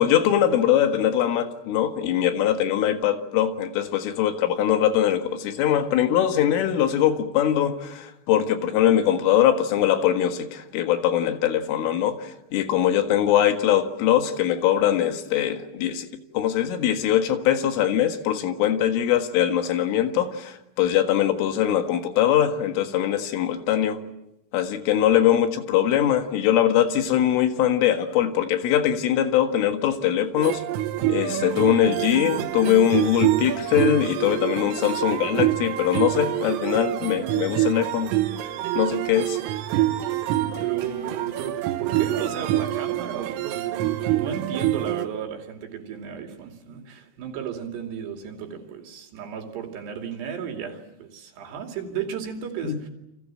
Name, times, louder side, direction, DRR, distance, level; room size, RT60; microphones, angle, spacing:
voice 1, 0.0-16.1 16.3-24.0 24.5-30.6 31.1-38.1 38.8-39.4 52.6-52.8, left 10 dB, 80° left, 4.2 m, -22 dB
sound 1, 30.4-45.1, right 14 dB, 90° right, 3.9 m, -26 dB
voice 2, 40.6-52.9, right 8 dB, 60° right, 4.5 m, -34 dB
29.5 x 25.0 x 7.6 m
omnidirectional pair, 5.7 m